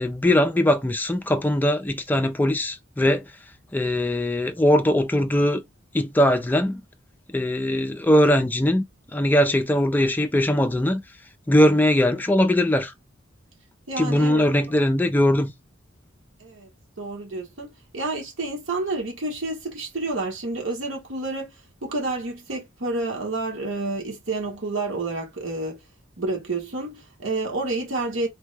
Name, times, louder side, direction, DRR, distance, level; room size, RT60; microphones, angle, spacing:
voice 1, 0.0-3.3 3.7-5.6 5.9-6.8 7.3-8.8 9.1-11.0 11.5-12.9 14.0-15.5, left 1 dB, 10° left, 0.3 m, -20 dB
voice 2, 13.9-14.4 16.4-16.7 17.0-21.5 21.8-25.8 26.2-28.3, right 2 dB, 85° right, 1.3 m, -29 dB
3.4 x 2.1 x 3.3 m
head